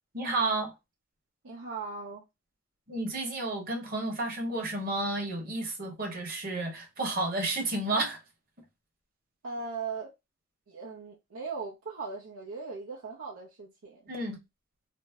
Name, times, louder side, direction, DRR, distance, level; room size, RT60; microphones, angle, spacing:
voice 1, 0.1-0.7 2.9-8.2 14.1-14.4, right 2 dB, 45° right, 1.0 m, -31 dB
voice 2, 1.4-2.2 9.4-10.1 10.7-14.1, right 4 dB, 85° right, 0.6 m, -39 dB
2.6 x 2.0 x 3.3 m
head